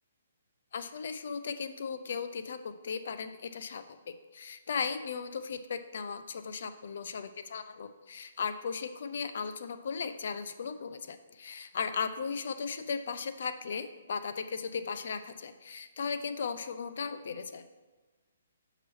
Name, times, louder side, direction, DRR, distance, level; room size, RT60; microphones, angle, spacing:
voice 1, 0.7-17.6, left 5 dB, 60° left, 11 dB, 0.5 m, -37 dB
7.2 x 4.8 x 3.1 m, 1.3 s
hypercardioid pair, 155°, 0 cm